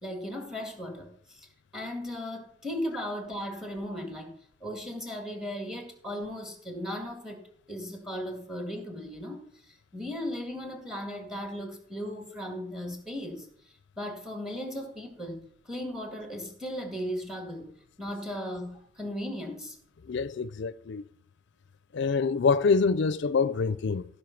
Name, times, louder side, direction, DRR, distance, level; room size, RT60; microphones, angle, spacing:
voice 1, 0.0-1.1 1.4-1.5 1.7-4.3 4.6-7.4 7.7-9.4 9.9-13.5 14.0-17.7 18.0-19.8, equal, ahead, 2.0 m, -36 dB
voice 2, 20.1-21.0 21.9-24.1, left 4 dB, 65° left, 0.4 m, -25 dB
15.5 x 5.3 x 5.8 m
head